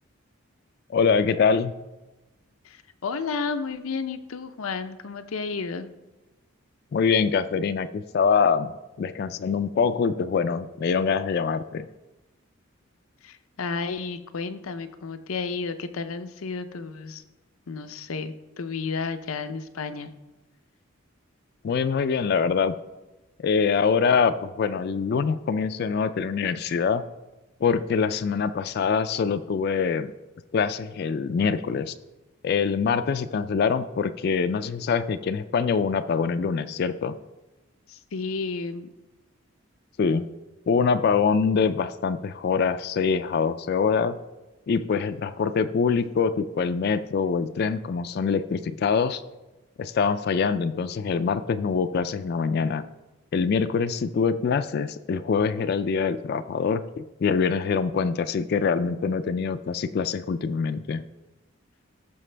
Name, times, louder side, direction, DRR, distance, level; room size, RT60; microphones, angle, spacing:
voice 1, 0.9-1.7 6.9-8.7 9.0-11.9 21.6-22.7 23.4-27.0 27.6-30.1 30.5-31.9 32.4-37.1 40.0-40.3 40.7-44.2 44.7-49.2 49.8-52.8 53.3-61.0, left 5 dB, 50° left, 11 dB, 0.3 m, -24 dB
voice 2, 2.6-5.9 13.2-17.2 17.7-20.1 37.9-38.9, left 4 dB, 90° left, 10 dB, 0.6 m, -32 dB
14.0 x 5.8 x 3.3 m, 1.1 s
head